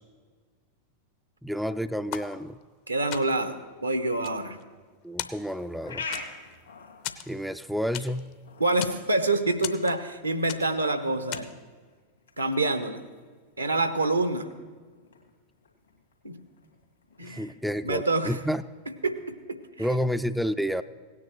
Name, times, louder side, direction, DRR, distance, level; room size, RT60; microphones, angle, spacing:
voice 1, 1.4-2.6 5.0-6.1 7.3-8.3 17.2-18.6 19.8-20.8, equal, ahead, 11 dB, 0.3 m, -30 dB
sound 1, 2.1-2.8 3.1-3.6 4.0-4.9 5.2-5.8 6.1-6.6 7.0-8.3 8.6-9.1 9.6-10.2 10.5-10.9 11.3-11.7, left 10 dB, 45° left, 0.6 m, -38 dB
voice 2, 2.9-4.6 8.6-11.5 12.4-13.0 13.6-14.5 16.2-16.4 17.2-17.5 17.8-18.4 19.0-19.2 19.5-19.9, right 2 dB, 80° right, 10 dB, 0.8 m, -26 dB
sound 2, 5.2-19.3, left 3 dB, 75° left, 2.2 m, -47 dB
17.0 x 9.6 x 3.1 m, 1.5 s
figure-of-eight pair, 90°, 0 cm